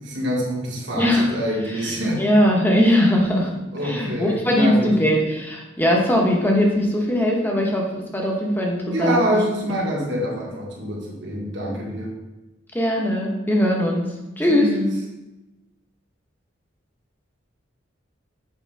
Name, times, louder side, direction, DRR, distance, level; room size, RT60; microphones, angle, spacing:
voice 1, 0.0-2.2 3.7-5.0 8.8-12.1 14.5-14.9, equal, 65° right, -2 dB, 1.7 m, -25 dB
voice 2, 1.0-1.3 1.7-3.5 3.8-9.2 12.7-14.1 14.4-14.7, left 1 dB, 10° left, -1 dB, 1.0 m, -20 dB
7.4 x 5.1 x 3.4 m, 1.0 s
head